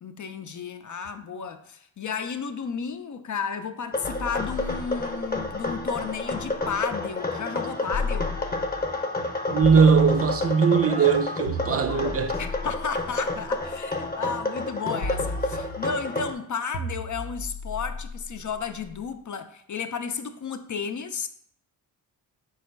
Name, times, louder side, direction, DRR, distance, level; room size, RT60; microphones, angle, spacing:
voice 1, 0.0-8.4 12.4-21.3, left 6 dB, 40° left, 0.5 m, -33 dB
sound 1, 3.9-16.3, left 2 dB, 20° left, 0.8 m, -30 dB
sound 2, 4.0-6.8 7.9-9.0 9.6-10.7 11.5-13.7 15.0-16.1 16.7-18.9, left 1 dB, 85° left, 0.8 m, -35 dB
voice 2, 9.5-12.4, right 6 dB, 30° right, 0.5 m, -20 dB
4.7 x 2.2 x 4.5 m
supercardioid pair, 45°, 46 cm